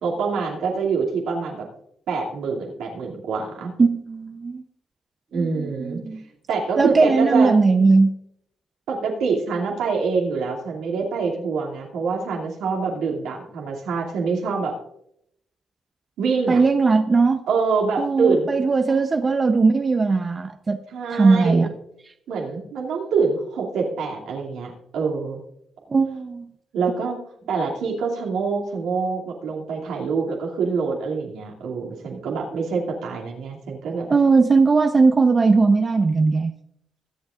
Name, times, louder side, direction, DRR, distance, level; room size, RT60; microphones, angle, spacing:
voice 1, 0.0-1.6 2.1-3.7 5.3-6.0 6.5-7.5 8.9-14.7 16.2-16.6 17.5-18.5 18.9-19.0 20.9-21.7 22.3-25.4 26.7-27.2 27.5-34.1, right 5 dB, 80° right, -1 dB, 2.5 m, -25 dB
voice 2, 3.8-4.6 5.3-6.2 6.8-8.1 16.5-17.4 18.0-20.8 21.1-21.7 25.9-26.5 34.1-36.5, right 4 dB, 35° right, 7 dB, 0.7 m, -18 dB
22.0 x 7.9 x 2.5 m, 0.75 s
supercardioid pair, 65°, 0 cm